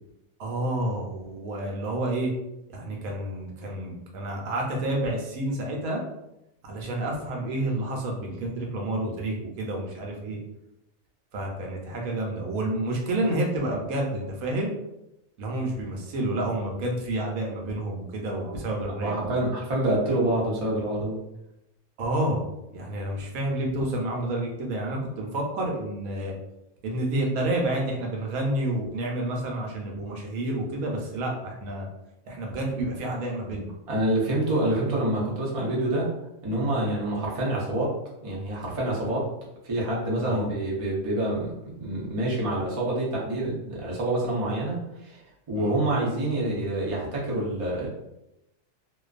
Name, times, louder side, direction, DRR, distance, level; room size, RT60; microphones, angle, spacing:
voice 1, 0.4-2.3 2.7-6.0 6.6-10.4 11.3-14.7 15.4-19.2 22.0-22.4 22.7-26.3 26.8-31.9 32.3-33.7 40.2-40.5 45.6-45.7, right 1 dB, 90° right, 0 dB, 1.1 m, -29 dB
voice 2, 19.0-21.2 33.9-36.0 36.4-37.9 38.2-39.3 39.6-45.2 45.5-47.9, right 1 dB, 40° right, -5 dB, 0.5 m, -27 dB
2.5 x 2.2 x 2.3 m, 0.88 s
omnidirectional pair, 1.4 m